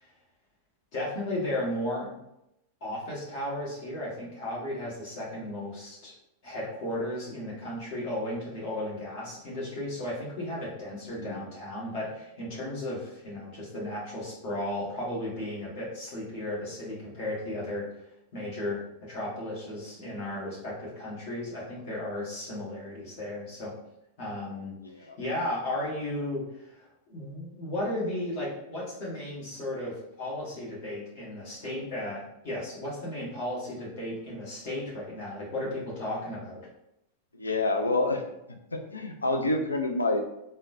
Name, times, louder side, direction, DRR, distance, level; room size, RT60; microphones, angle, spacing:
voice 1, 0.9-2.2 2.8-6.1 6.4-17.8 18.3-23.7 24.2-36.6, left 1 dB, 50° left, -6 dB, 1.4 m, -35 dB
voice 2, 37.4-38.2 38.7-40.2, left 2 dB, 80° left, 4 dB, 0.4 m, -28 dB
3.6 x 2.2 x 2.6 m, 0.86 s
figure-of-eight pair, 90°, 0 cm